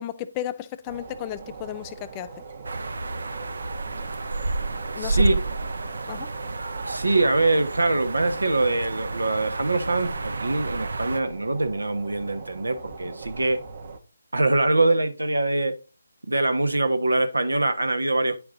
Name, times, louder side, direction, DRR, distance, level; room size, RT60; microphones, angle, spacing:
voice 1, 0.0-2.3 5.0-5.2 6.1-6.3, left 12 dB, 20° left, 0.4 m, -34 dB
sound 1, 0.9-14.0, right 5 dB, 45° right, 1.1 m, -41 dB
sound 2, 2.6-11.2, right 2 dB, 70° right, 0.8 m, -30 dB
voice 2, 5.0-5.3 6.8-13.6 14.3-15.7 16.3-18.4, right 2 dB, 90° right, 1.2 m, -23 dB
9.1 x 4.7 x 3.8 m
figure-of-eight pair, 160°, 0 cm